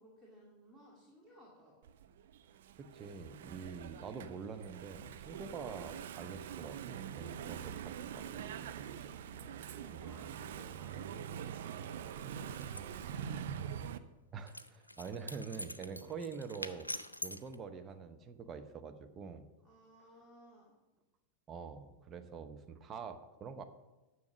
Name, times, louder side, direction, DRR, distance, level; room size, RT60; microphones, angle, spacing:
voice 1, 0.0-1.8 9.3-13.7 19.6-20.7, equal, 5° right, -5 dB, 2.3 m, -59 dB
Engine / Mechanisms, 1.8-14.0, right 8 dB, 55° right, 0.5 m, -44 dB
voice 2, 2.8-8.5 8.9-9.1 9.9-10.3 14.3-16.9 17.2-19.4 21.5-23.6, right 5 dB, 25° right, 7 dB, 0.9 m, -46 dB
sound 1, 12.5-12.8 14.5-17.6, left 1 dB, 85° left, 0.5 m, -44 dB
10.5 x 6.4 x 6.3 m, 1.1 s
figure-of-eight pair, 90°, 0 cm